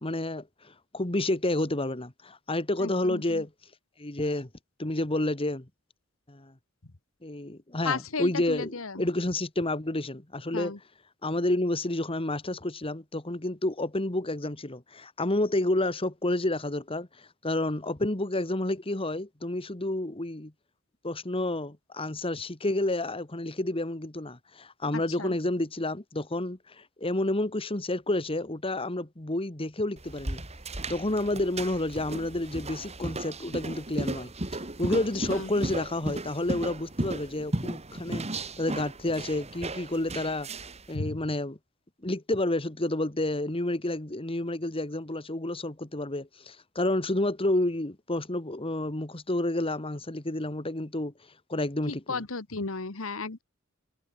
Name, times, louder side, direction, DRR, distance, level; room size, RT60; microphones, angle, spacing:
voice 1, 0.0-3.5 4.0-4.5 4.8-5.7 6.3-6.5 7.2-10.8 11.2-20.5 21.0-30.4 30.9-34.3 34.6-40.5 40.9-41.6 42.0-51.1 51.5-52.3, left 1 dB, 25° left, 1.8 m, -30 dB
voice 2, 2.8-3.2 7.8-8.9 10.5-10.8 25.2-25.3 35.4-35.5 40.9-41.1 51.9-53.4, left 4 dB, 85° left, 1.5 m, -33 dB
sound 1, 30.0-40.9, right 1 dB, 30° right, 2.6 m, -35 dB
head